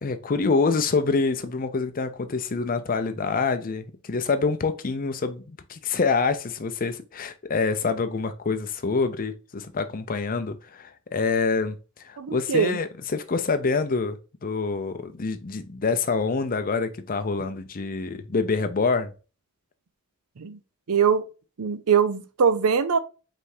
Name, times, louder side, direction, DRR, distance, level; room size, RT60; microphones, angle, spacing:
voice 1, 0.0-11.8 12.0-19.1, left 4 dB, 40° left, 0.6 m, -26 dB
voice 2, 12.2-12.8 20.4-20.6 20.9-21.2 21.6-23.0, right 6 dB, 75° right, 0.6 m, -22 dB
5.1 x 3.4 x 2.7 m
head